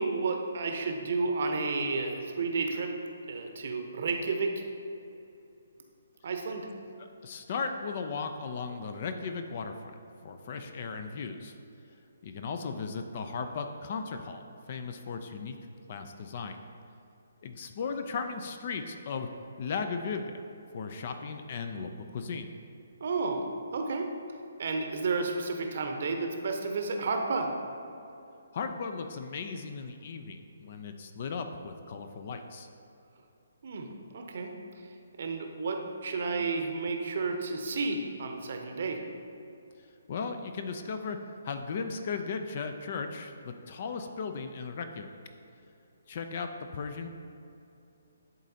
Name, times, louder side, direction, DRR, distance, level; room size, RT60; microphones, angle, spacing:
voice 1, 0.0-2.9 3.3-4.6 6.2-6.7 23.0-24.1 24.6-27.5 33.6-34.5 34.8-39.0, right 3 dB, 55° right, 4 dB, 0.8 m, -32 dB
voice 2, 7.0-9.9 10.2-11.5 12.2-15.6 15.9-16.6 17.4-19.3 19.6-20.4 20.7-22.5 28.5-32.7 40.1-41.2 41.4-45.1 46.1-47.1, left 5 dB, 45° left, 7 dB, 0.4 m, -36 dB
11.0 x 4.0 x 2.8 m, 2.8 s
figure-of-eight pair, 135°, 0 cm